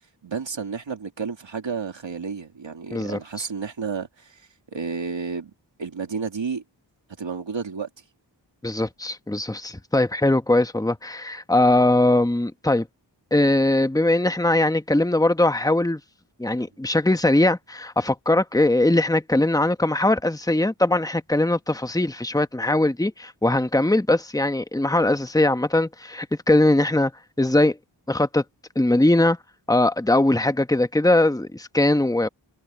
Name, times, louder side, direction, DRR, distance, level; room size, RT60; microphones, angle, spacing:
voice 1, 0.2-5.5 5.8-6.6 7.2-7.9, right 5 dB, 90° right, 2.4 m, -31 dB
voice 2, 8.6-12.9 13.3-16.0 16.4-27.1 27.4-27.8 28.1-28.4 28.7-29.4 29.7-32.3, left 1 dB, 10° left, 1.1 m, -20 dB
wide cardioid pair, 55°, 43 cm